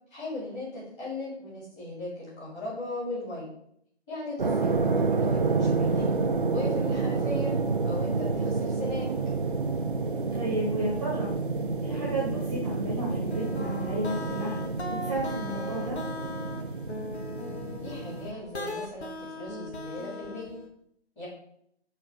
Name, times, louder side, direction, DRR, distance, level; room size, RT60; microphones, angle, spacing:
voice 1, 0.1-3.5 4.1-6.0 6.5-7.5 7.8-9.1 17.8-20.5 21.2-21.3, left 2 dB, 10° left, -10 dB, 2.8 m, -37 dB
sound 1, 4.4-18.3, right 4 dB, 50° right, 0.7 m, -29 dB
voice 2, 10.3-11.3 11.8-16.0, right 1 dB, 20° right, -4 dB, 1.3 m, -32 dB
sound 2, 13.1-20.7, left 2 dB, 70° left, 1.4 m, -38 dB
5.7 x 4.1 x 5.8 m, 0.70 s
figure-of-eight pair, 160°, 34 cm